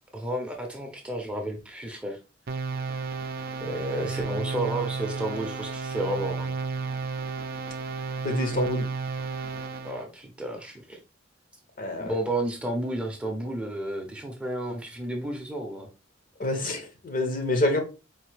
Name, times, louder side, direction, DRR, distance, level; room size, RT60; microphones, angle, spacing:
voice 1, 0.1-2.2 3.6-6.5 9.8-11.0 12.0-15.9, right 1 dB, 5° right, 0.7 m, -32 dB
sound 1, 2.5-10.0, right 4 dB, 50° right, 0.5 m, -32 dB
voice 2, 8.2-8.9 11.8-12.1 16.4-17.8, left 1 dB, 45° left, 0.8 m, -27 dB
4.2 x 2.7 x 3.2 m
head